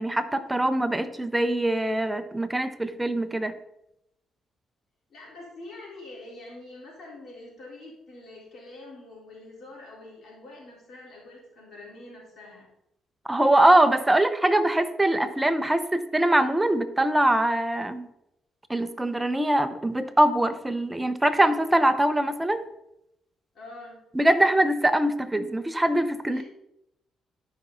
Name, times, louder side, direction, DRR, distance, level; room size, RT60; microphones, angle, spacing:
voice 1, 0.0-3.5 13.3-18.1 18.7-22.6 24.1-26.4, right 1 dB, 10° right, 10 dB, 0.8 m, -23 dB
voice 2, 5.1-12.7 23.5-24.0 26.3-26.4, left 2 dB, 55° left, -4 dB, 3.9 m, -45 dB
12.5 x 5.5 x 3.9 m, 0.83 s
cardioid pair, 90°, 0 cm